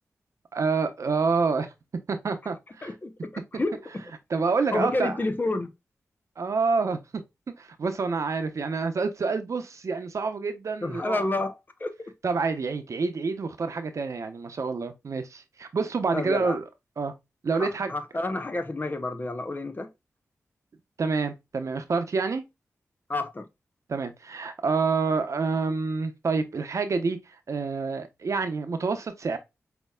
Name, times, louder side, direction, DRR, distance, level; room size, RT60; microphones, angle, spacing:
voice 1, 0.5-1.7 2.1-2.9 4.3-5.2 6.4-7.2 7.6-11.3 12.2-16.6 17.0-17.1 17.4-17.9 21.0-22.4 23.9-27.2 27.5-29.4, right 4 dB, 65° right, 0.8 m, -27 dB
voice 2, 2.8-3.8 4.7-5.7 10.8-12.0 16.1-16.6 17.5-19.9 23.1-23.5, left 2 dB, 35° left, 0.8 m, -29 dB
5.3 x 2.9 x 2.2 m
cardioid pair, 45°, 6 cm